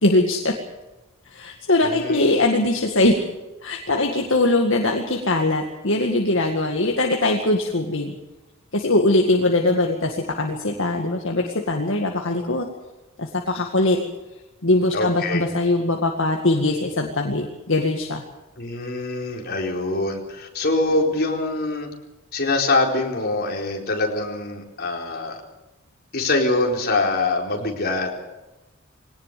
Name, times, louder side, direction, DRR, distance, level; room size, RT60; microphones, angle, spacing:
voice 1, 0.0-0.5 1.3-3.2 3.6-8.2 8.7-12.7 13.2-14.0 14.6-18.2, left 2 dB, 65° left, 1 dB, 2.0 m, -21 dB
voice 2, 1.8-2.4 14.9-15.5 18.6-21.9 22.3-25.4 26.1-28.2, left 2 dB, 50° left, 0 dB, 4.4 m, -24 dB
22.0 x 18.5 x 6.9 m, 1.0 s
head